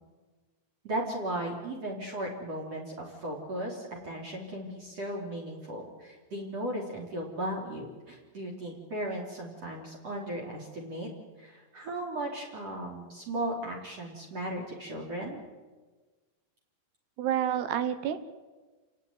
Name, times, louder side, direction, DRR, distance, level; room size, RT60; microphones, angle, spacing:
voice 1, 0.8-11.1 11.4-15.4, right 1 dB, 40° right, 2 dB, 4.1 m, -36 dB
voice 2, 17.2-18.2, right 10 dB, 75° right, 11 dB, 3.2 m, -28 dB
28.5 x 17.5 x 9.5 m, 1.3 s
omnidirectional pair, 4.9 m